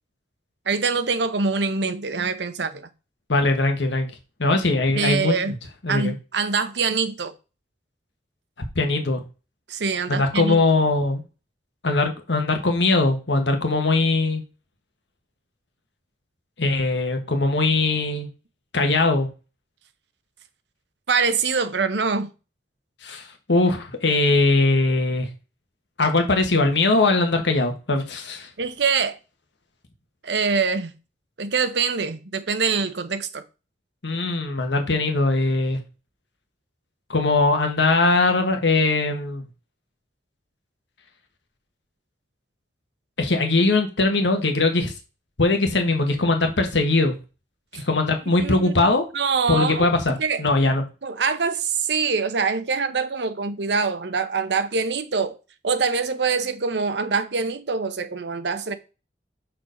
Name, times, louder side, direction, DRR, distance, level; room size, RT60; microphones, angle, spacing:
voice 1, 0.7-2.9 4.9-5.5 5.9-7.3 9.7-10.6 21.1-22.3 28.6-29.2 30.2-30.9 31.4-33.4 47.7-47.8 48.3-50.4 51.0-55.4 55.6-58.8, right 5 dB, 70° right, 0.8 m, -24 dB
voice 2, 3.3-4.1 4.4-5.6 5.8-6.1 8.7-9.2 10.1-11.2 11.8-14.4 16.6-18.3 18.7-19.3 23.0-23.2 23.5-25.3 26.0-28.5 34.0-35.8 37.1-39.4 43.2-44.9 45.4-47.2 47.7-49.0 49.5-50.1 50.4-50.8, left 2 dB, 85° left, 1.4 m, -21 dB
6.1 x 4.6 x 5.1 m
head